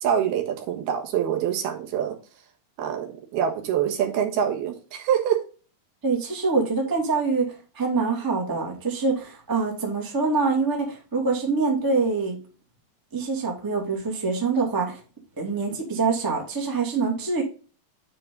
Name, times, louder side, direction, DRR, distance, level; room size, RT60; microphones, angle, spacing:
voice 1, 0.0-2.1 2.8-5.4, right 9 dB, 80° right, 2 dB, 3.3 m, -25 dB
voice 2, 6.0-12.4 13.1-15.0 15.4-17.4, right 4 dB, 10° right, 0 dB, 1.3 m, -25 dB
9.5 x 4.7 x 3.9 m, 0.36 s
omnidirectional pair, 4.4 m